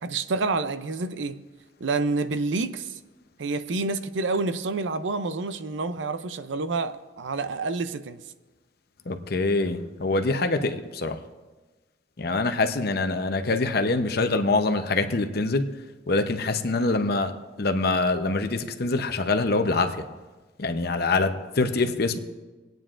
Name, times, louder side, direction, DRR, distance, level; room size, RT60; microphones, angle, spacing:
voice 1, 0.0-1.4 1.8-3.0 3.4-8.2, right 3 dB, 85° right, 0.5 m, -28 dB
voice 2, 9.1-11.2 12.2-15.6 16.1-17.3 17.6-20.0 20.6-22.2, left 3 dB, 55° left, 0.8 m, -24 dB
27.0 x 9.1 x 2.5 m
head